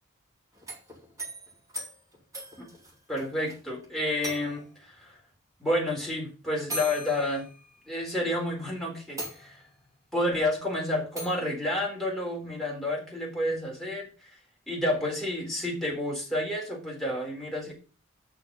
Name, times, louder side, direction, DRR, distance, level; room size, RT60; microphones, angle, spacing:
sound 1, 0.5-3.6 3.8-3.9 4.2-4.8 5.9-6.0 6.7-8.1 8.6-8.7 9.2-9.9 11.2-11.5, equal, 15° right, 4.1 m, -40 dB
voice 1, 3.1-5.2 5.6-7.5 7.9-9.6 10.1-14.3 14.7-17.7, left 1 dB, ahead, -3 dB, 4.1 m, -30 dB
7.8 x 6.4 x 6.8 m, 0.35 s
head